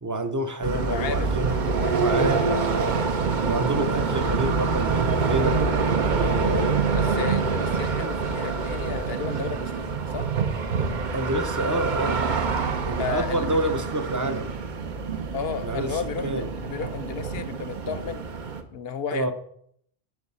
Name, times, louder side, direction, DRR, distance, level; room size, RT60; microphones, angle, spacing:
voice 1, 0.0-1.5 1.9-3.0 3.4-5.6 6.1-6.8 7.1-7.3 11.1-12.2 12.9-14.6 15.6-16.5 19.1-19.3, right 1 dB, 20° right, 8 dB, 0.6 m, -28 dB
sound 1, 0.6-18.6, right 4 dB, 50° right, 0.9 m, -26 dB
voice 2, 0.8-2.7 6.2-6.4 6.9-10.3 13.0-13.8 15.3-18.2 18.7-19.3, left 6 dB, 70° left, 13 dB, 0.9 m, -34 dB
9.5 x 4.7 x 5.5 m, 0.67 s
omnidirectional pair, 1.1 m